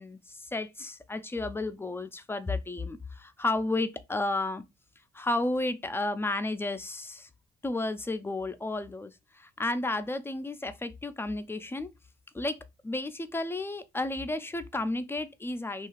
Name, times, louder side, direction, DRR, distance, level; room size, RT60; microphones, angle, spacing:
voice 1, 0.0-4.6 5.1-7.3 7.6-11.9 12.3-12.6 12.8-15.9, left 2 dB, 10° left, 0.3 m, -32 dB
2.7 x 2.4 x 3.0 m
cardioid pair, 90°, 20 cm